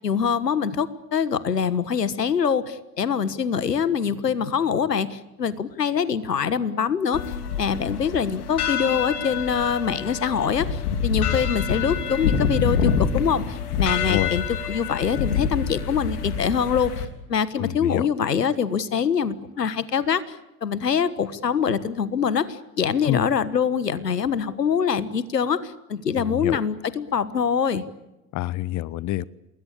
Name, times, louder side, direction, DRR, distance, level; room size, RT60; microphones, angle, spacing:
voice 1, 0.0-7.2 7.6-16.9 17.3-20.2 20.6-27.8, left 7 dB, 85° left, 16 dB, 1.5 m, -24 dB
sound 1, 7.1-17.1, left 6 dB, 70° left, 3.4 m, -26 dB
voice 2, 14.0-14.4 17.6-18.1 23.0-23.2 26.1-26.6 28.3-29.2, left 15 dB, 40° left, 21 dB, 0.9 m, -26 dB
28.5 x 21.0 x 8.5 m, 0.98 s
figure-of-eight pair, 75°, 47 cm